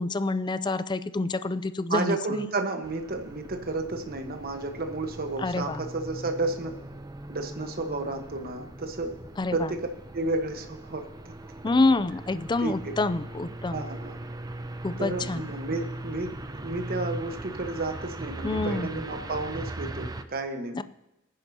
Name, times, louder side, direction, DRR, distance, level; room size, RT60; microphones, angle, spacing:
voice 1, 0.0-2.2 5.4-5.8 9.4-9.7 11.6-13.8 14.8-15.5 18.4-19.0 20.7-20.8, left 2 dB, 20° left, 14 dB, 0.4 m, -27 dB
voice 2, 1.9-6.7 7.3-9.1 9.5-9.9 10.1-11.3 12.6-12.9 13.7-14.2 15.0-20.8, right 2 dB, 45° right, 5 dB, 1.2 m, -32 dB
sound 1, 2.8-20.2, right 2 dB, 20° right, 0.6 m, -40 dB
19.0 x 10.5 x 2.8 m, 0.93 s
head